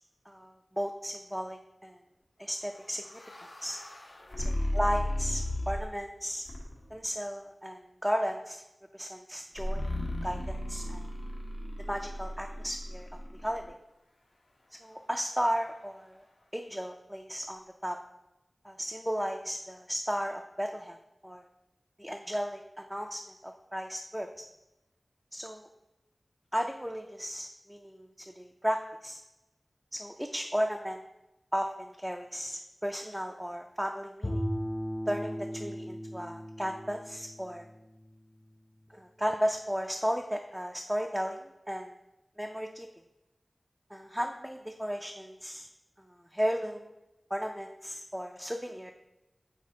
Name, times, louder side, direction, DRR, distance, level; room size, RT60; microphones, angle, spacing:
voice 1, 0.3-2.0 2.4-3.2 3.6-3.8 4.5-6.4 6.9-8.6 8.9-9.9 10.2-11.1 11.8-13.6 14.8-16.2 16.5-18.0 18.6-21.0 21.2-21.5 22.0-24.3 25.3-25.7 26.5-29.2 29.9-31.0 31.5-34.4 35.1-37.7 38.9-41.9 42.4-42.9 43.9-45.7 46.1-46.9 47.3-48.9, equal, 5° right, 2 dB, 0.4 m, -34 dB
sound 1, 2.7-6.0 6.4-7.0 9.6-13.7, left 1 dB, 85° left, 1.1 m, -35 dB
Bowed string instrument, 34.2-38.5, equal, 40° left, 0.8 m, -37 dB
9.3 x 4.2 x 2.8 m, 0.96 s
wide cardioid pair, 70°, 0 cm